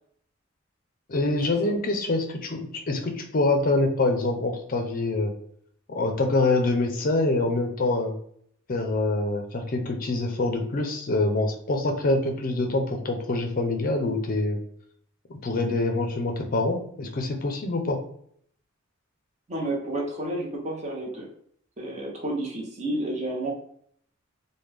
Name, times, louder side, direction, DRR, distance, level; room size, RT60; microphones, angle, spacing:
voice 1, 1.1-5.3 5.9-8.2 8.7-14.6 15.3-18.0, left 2 dB, 45° left, 3 dB, 0.5 m, -25 dB
voice 2, 19.5-21.3 21.8-23.5, right 1 dB, 35° right, -1 dB, 0.7 m, -30 dB
3.2 x 2.2 x 3.3 m, 0.65 s
head